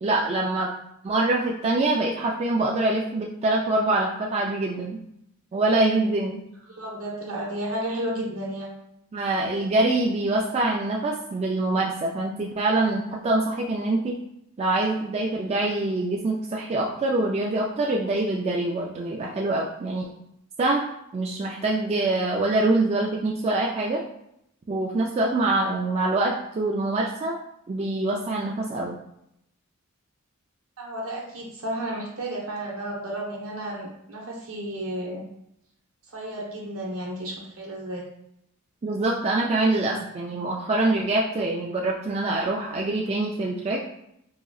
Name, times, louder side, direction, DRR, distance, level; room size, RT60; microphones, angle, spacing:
voice 1, 0.0-0.7 1.0-5.0 5.5-6.4 9.1-14.2 14.6-20.1 20.6-20.8 21.1-24.0 24.7-27.4 27.7-29.0 38.8-43.8, right 2 dB, 30° right, -1 dB, 0.3 m, -24 dB
voice 2, 6.7-8.7 30.8-35.2 36.1-38.1, right 1 dB, 70° right, -2 dB, 1.0 m, -32 dB
3.6 x 3.0 x 2.3 m, 0.77 s
head